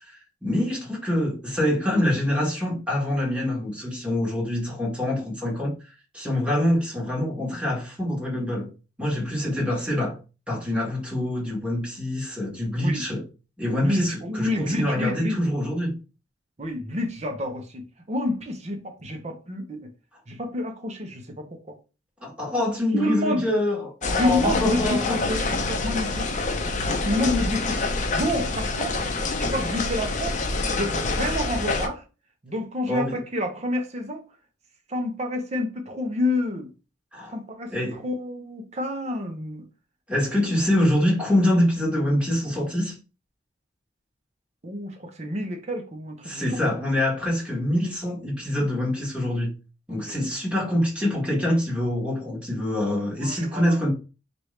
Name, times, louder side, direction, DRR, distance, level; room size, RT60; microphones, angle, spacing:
voice 1, 0.1-5.7 6.1-8.7 9.0-10.2 10.5-13.2 13.6-16.0 22.2-25.2 32.9-33.2 37.1-37.3 37.7-38.0 40.1-43.0 46.2-49.5 49.9-53.9, left 1 dB, 5° right, 1.5 m, -25 dB
voice 2, 13.8-15.4 16.6-19.9 20.3-21.7 22.9-23.5 24.2-26.3 27.0-29.1 29.4-30.4 30.7-32.0 32.4-34.2 34.9-36.7 37.3-39.7 44.6-46.5 50.1-50.2 53.2-53.8, left 1 dB, 35° right, 0.9 m, -29 dB
sound 1, 24.0-31.9, left 3 dB, 40° left, 0.6 m, -26 dB
4.7 x 2.6 x 3.2 m
head